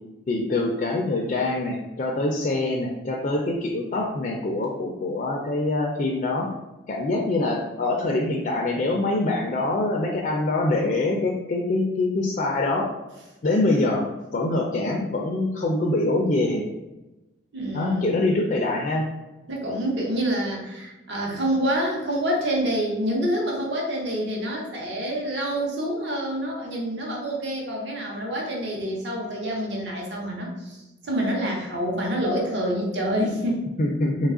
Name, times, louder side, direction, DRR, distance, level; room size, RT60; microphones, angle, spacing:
voice 1, 0.3-6.5 6.9-12.9 13.4-16.6 17.7-19.1 33.8-34.3, left 2 dB, 40° left, 0 dB, 0.3 m, -24 dB
voice 2, 17.5-18.3 19.5-30.8 31.0-33.7, equal, 60° right, -2 dB, 0.8 m, -27 dB
3.1 x 2.3 x 3.6 m, 1.0 s
head